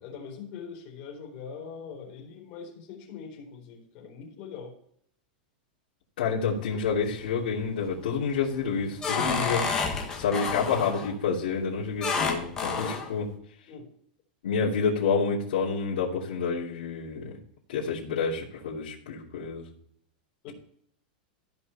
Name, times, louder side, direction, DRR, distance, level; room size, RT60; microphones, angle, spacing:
voice 1, 0.0-4.7 12.7-13.0 13.7-13.9 20.4-20.5, left 6 dB, 35° left, -2 dB, 4.1 m, -42 dB
voice 2, 6.2-9.8 10.2-13.2 14.4-17.4 17.7-19.7, left 5 dB, 75° left, -8 dB, 3.0 m, -28 dB
sound 1, 6.6-7.2 7.7-8.1 8.5-11.1 12.0-13.1, left 5 dB, 10° left, 1.5 m, -30 dB
15.0 x 5.4 x 4.3 m, 0.65 s
supercardioid pair, 175°, 5 cm